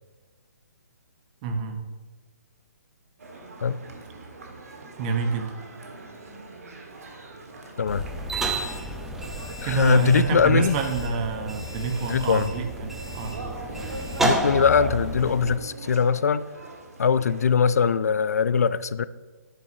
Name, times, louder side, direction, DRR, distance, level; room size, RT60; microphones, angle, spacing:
voice 1, 1.4-1.8 5.0-5.5 9.6-13.4, right 5 dB, 30° right, 5 dB, 1.0 m, -27 dB
sound 1, 3.2-17.5, right 2 dB, 60° right, 1.6 m, -41 dB
sound 2, 7.9-15.6, right 1 dB, 5° right, 0.7 m, -31 dB
voice 2, 9.6-10.8 12.0-12.5 14.2-16.4 17.0-19.0, left 6 dB, 65° left, 17 dB, 0.4 m, -21 dB
10.5 x 8.5 x 2.7 m, 1.4 s
figure-of-eight pair, 130°, 9 cm